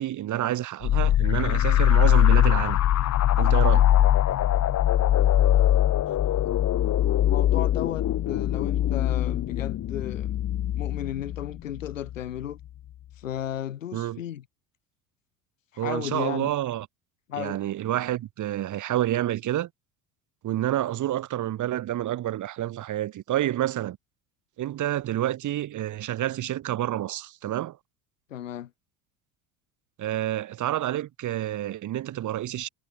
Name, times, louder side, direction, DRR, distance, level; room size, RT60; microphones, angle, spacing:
voice 1, 0.0-2.8 3.4-3.9 13.9-14.2 15.8-16.9 17.4-19.7 20.4-24.0 24.6-27.8 30.0-32.7, right 13 dB, 50° right, 6.7 m, -28 dB
sound 1, 0.8-12.2, left 12 dB, 45° left, 2.3 m, -22 dB
voice 2, 7.3-10.3 10.7-12.6 13.2-14.4 15.7-16.5 17.3-17.6 28.3-28.7, left 11 dB, 85° left, 4.3 m, -34 dB
hypercardioid pair, 70°, 38 cm